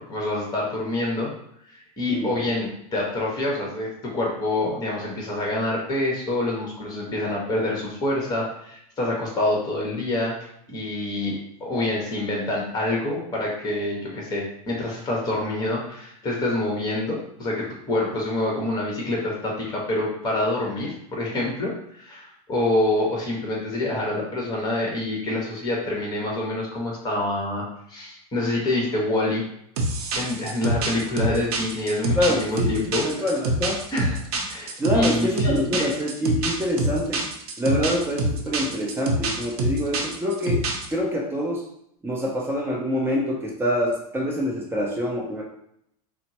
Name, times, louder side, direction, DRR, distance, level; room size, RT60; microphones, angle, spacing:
voice 1, 0.1-1.3 1.7-10.4 10.7-29.4 30.1-33.3 33.9-34.2 34.5-35.9, left 1 dB, 20° left, -2 dB, 1.2 m, -26 dB
sound 1, 29.8-40.9, right 1 dB, 85° right, 0.7 m, -26 dB
voice 2, 32.2-33.8 34.8-37.2 37.6-41.6 42.0-45.4, equal, 10° right, -2 dB, 0.6 m, -26 dB
4.2 x 2.0 x 2.9 m, 0.72 s
supercardioid pair, 115°, 19 cm